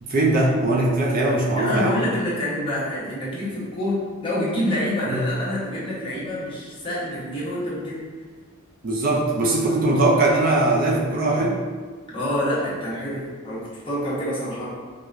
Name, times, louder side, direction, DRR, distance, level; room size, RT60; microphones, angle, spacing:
voice 1, 0.0-2.0 5.1-5.2 8.8-11.6, right 2 dB, 45° right, -3 dB, 0.4 m, -20 dB
voice 2, 1.6-8.0 12.1-14.7, left 1 dB, 25° left, -8 dB, 0.9 m, -27 dB
4.5 x 2.1 x 2.5 m, 1.5 s
head